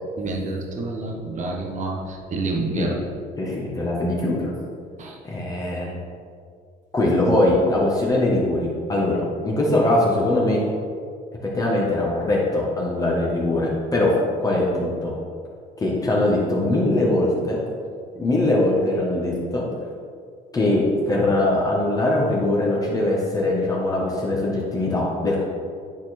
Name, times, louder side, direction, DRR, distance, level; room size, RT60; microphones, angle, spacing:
voice 1, 0.2-3.0 5.0-5.2, right 2 dB, 45° right, 1 dB, 1.2 m, -28 dB
voice 2, 3.4-4.5 5.2-6.0 6.9-10.6 11.5-14.1 14.4-15.1 15.8-17.6 18.1-19.6 20.5-25.4, left 1 dB, 20° left, -4 dB, 1.6 m, -21 dB
10.5 x 4.4 x 4.4 m, 2.2 s
cardioid pair, 110°, 17 cm